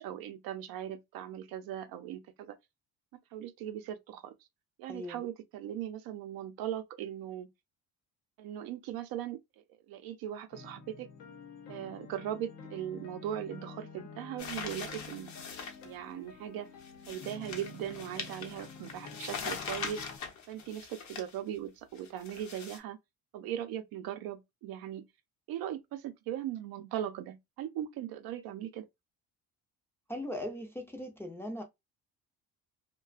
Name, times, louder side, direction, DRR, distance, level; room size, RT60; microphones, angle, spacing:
voice 1, 0.0-2.6 3.3-4.3 4.8-7.5 8.4-9.4 9.9-11.1 11.7-15.3 15.8-16.7 17.1-20.0 20.5-23.0 23.3-25.1 25.5-28.9, right 11 dB, 75° right, 0.6 m, -39 dB
voice 2, 4.9-5.2 30.1-31.6, left 1 dB, 5° left, 0.5 m, -39 dB
sound 1, 10.5-20.2, left 5 dB, 80° left, 0.8 m, -49 dB
sound 2, 14.4-15.9 16.8-21.4 22.0-22.8, left 5 dB, 55° left, 0.8 m, -42 dB
2.3 x 2.2 x 2.4 m
cardioid pair, 115°, 35 cm